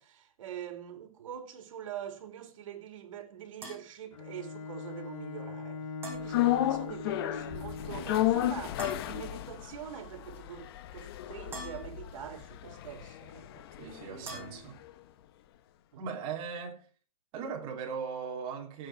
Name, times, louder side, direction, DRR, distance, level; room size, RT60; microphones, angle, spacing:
voice 1, 0.0-5.8 6.1-13.7 14.1-14.6 15.9-16.0, right 9 dB, 65° right, 2.9 m, -44 dB
sound 1, 3.6-3.8 6.0-6.3 8.8-9.2 11.5-12.0 14.3-14.7, right 1 dB, 15° right, 5.8 m, -43 dB
Bowed string instrument, 4.1-8.3, left 4 dB, 70° left, 3.3 m, -41 dB
sound 2, 6.3-14.6 14.9-15.0, left 14 dB, 45° left, 0.9 m, -33 dB
voice 2, 13.8-14.8 16.0-16.8 17.3-18.9, right 6 dB, 30° right, 3.1 m, -38 dB
16.5 x 7.9 x 4.7 m
hypercardioid pair, 160°, 18 cm